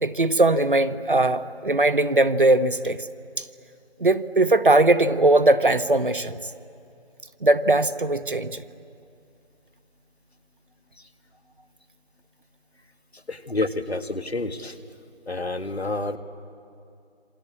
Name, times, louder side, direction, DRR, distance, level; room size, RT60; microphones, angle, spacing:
voice 1, 0.0-3.0 4.0-6.4 7.4-8.6, right 2 dB, 50° right, 11 dB, 1.1 m, -20 dB
voice 2, 13.1-14.8 15.3-16.2, left 2 dB, 70° left, 10 dB, 1.9 m, -29 dB
27.5 x 26.0 x 8.5 m, 2.5 s
figure-of-eight pair, 170°, 33 cm